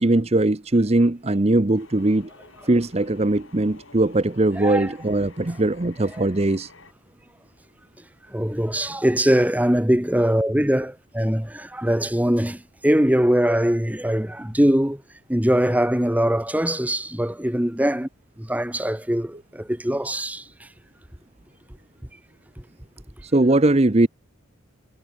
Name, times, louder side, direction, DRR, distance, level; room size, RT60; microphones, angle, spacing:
voice 1, 0.0-2.3 2.7-6.7 23.2-24.1, right 2 dB, 30° right, 0.8 m, -20 dB
sound 1, 1.7-6.9, left 3 dB, 80° left, 8.0 m, -50 dB
voice 2, 4.6-4.9 6.1-6.2 8.3-15.0 15.3-18.1 18.4-20.4, equal, 10° right, 1.3 m, -22 dB
head